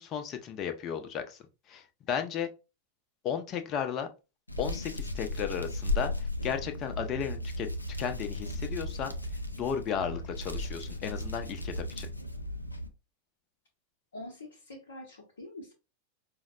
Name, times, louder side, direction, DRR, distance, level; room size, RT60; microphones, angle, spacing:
voice 1, 0.0-1.4 1.7-2.5 3.2-4.1 4.6-7.7 8.0-9.1 9.5-12.1, left 8 dB, 35° left, 0.6 m, -34 dB
Hands, 4.5-12.9, left 1 dB, 85° left, 0.3 m, -35 dB
voice 2, 14.1-15.7, left 1 dB, 70° left, 0.7 m, -45 dB
4.8 x 2.0 x 2.4 m
figure-of-eight pair, 90°, 0 cm